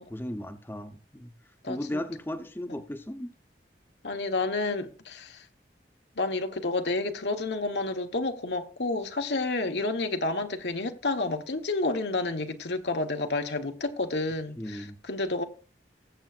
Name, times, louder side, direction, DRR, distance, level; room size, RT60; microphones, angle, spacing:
voice 1, 0.0-1.3 1.7-3.3 14.6-15.0, left 1 dB, 10° left, 0.8 m, -36 dB
voice 2, 1.6-2.0 4.0-5.4 6.2-15.4, left 2 dB, 75° left, 1.2 m, -30 dB
19.5 x 8.2 x 2.5 m
head